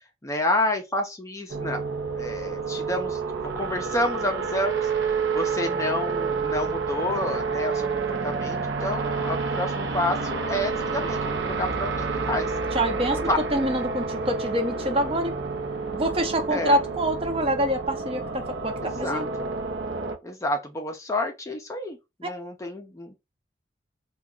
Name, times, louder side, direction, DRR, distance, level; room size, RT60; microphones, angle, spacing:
voice 1, 0.2-1.8 2.1-3.2 3.6-12.5 13.3-13.4 16.5-16.8 18.8-19.5 20.2-23.2, left 1 dB, 15° left, 0.5 m, -29 dB
sound 1, 1.5-20.2, right 4 dB, 70° right, 0.6 m, -29 dB
voice 2, 12.7-15.4 15.9-19.3, right 1 dB, 30° right, 0.6 m, -26 dB
2.9 x 2.3 x 3.6 m
head